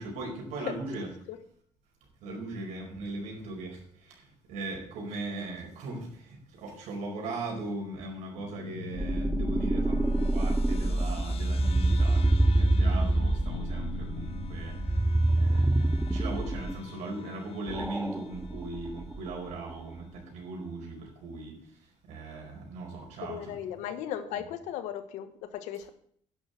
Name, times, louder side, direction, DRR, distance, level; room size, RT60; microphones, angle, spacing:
voice 1, 0.0-1.1 2.2-23.5 24.3-24.4, right 2 dB, 80° right, 1 dB, 4.8 m, -39 dB
voice 2, 0.6-1.4 23.2-25.9, left 10 dB, 85° left, 11 dB, 1.3 m, -37 dB
sound 1, 8.4-19.2, left 11 dB, 55° left, 0.8 m, -43 dB
sound 2, 9.0-16.8 17.7-19.5, right 1 dB, 5° right, 0.4 m, -26 dB
10.5 x 6.7 x 8.0 m, 0.63 s
cardioid pair, 105°, 12 cm